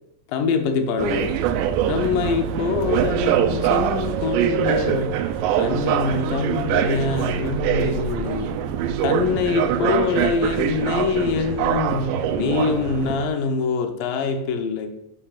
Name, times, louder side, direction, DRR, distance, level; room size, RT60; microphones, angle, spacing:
voice 1, 0.3-1.4 1.9-5.2 5.6-8.5 9.0-14.9, left 5 dB, 80° left, 6 dB, 2.4 m, -24 dB
sound 1, 1.0-13.3, right 9 dB, 85° right, 2.2 m, -23 dB
11.5 x 6.9 x 2.4 m, 0.85 s
omnidirectional pair, 3.9 m